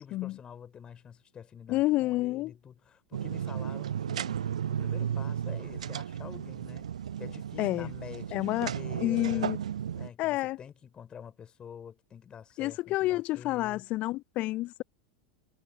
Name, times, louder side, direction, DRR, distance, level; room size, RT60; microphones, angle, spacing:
voice 1, 0.0-6.9 7.2-9.5 9.9-13.8, left 8 dB, 25° left, 3.5 m, -47 dB
voice 2, 1.7-2.5 7.6-7.9 8.3-8.7 9.0-9.6 10.2-10.6 12.6-14.8, left 18 dB, 40° left, 0.3 m, -29 dB
sound 1, 3.1-10.1, right 9 dB, 75° right, 0.7 m, -34 dB
figure-of-eight pair, 90°, 4 cm